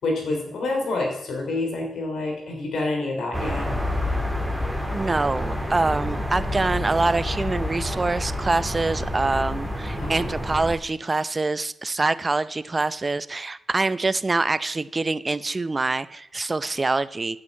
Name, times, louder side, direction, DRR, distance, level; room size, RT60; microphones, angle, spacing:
voice 1, 0.0-3.7 10.0-10.3, left 2 dB, 80° left, 2 dB, 3.5 m, -27 dB
sound 1, 3.3-10.7, left 1 dB, ahead, 2.4 m, -28 dB
voice 2, 4.9-17.4, right 3 dB, 35° right, 15 dB, 0.6 m, -25 dB
8.7 x 6.2 x 8.4 m, 0.78 s
cardioid pair, 60°, 0 cm